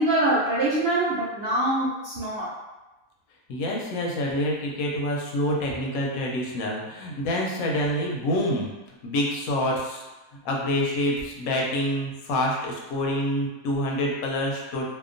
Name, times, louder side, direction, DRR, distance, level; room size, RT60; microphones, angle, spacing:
voice 1, 0.0-2.5, right 1 dB, 65° right, -7 dB, 0.6 m, -24 dB
voice 2, 3.5-8.7 9.0-10.0 10.4-14.9, left 1 dB, 80° left, -1 dB, 1.0 m, -27 dB
2.8 x 2.1 x 2.5 m, 1.1 s
omnidirectional pair, 1.5 m